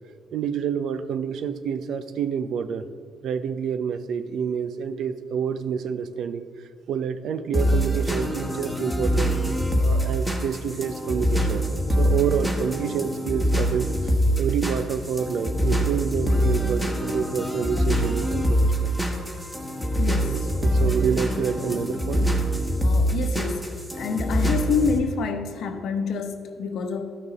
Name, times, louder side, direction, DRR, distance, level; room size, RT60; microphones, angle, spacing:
voice 1, 0.3-2.9 3.2-9.4 9.8-11.7 12.0-19.0 20.3-22.4, right 7 dB, 70° right, 12 dB, 0.5 m, -28 dB
sound 1, 7.5-25.0, equal, 5° right, 1.4 m, -24 dB
voice 2, 20.0-20.4 22.8-23.7 24.0-27.1, left 5 dB, 75° left, 7 dB, 0.9 m, -27 dB
13.5 x 6.0 x 4.0 m, 2.4 s
cardioid pair, 90°, 0 cm